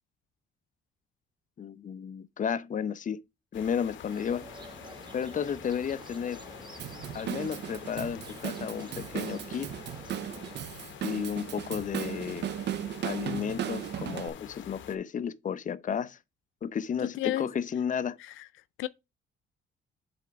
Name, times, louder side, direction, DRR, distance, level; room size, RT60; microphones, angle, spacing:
voice 1, 1.6-3.2 3.5-4.4 5.1-6.5 7.1-9.7 11.0-12.5 13.0-16.2 16.6-18.2, left 7 dB, 40° left, 0.7 m, -33 dB
sound 1, 3.5-15.0, left 9 dB, 70° left, 1.0 m, -47 dB
sound 2, 4.1-10.6, right 3 dB, 25° right, 1.0 m, -49 dB
Drum kit / Drum, 6.8-14.3, right 11 dB, 60° right, 0.5 m, -36 dB
voice 2, 17.2-17.5 18.2-18.4 18.8-18.9, left 15 dB, 85° left, 0.4 m, -31 dB
7.8 x 3.4 x 5.1 m
cardioid pair, 90°, 20 cm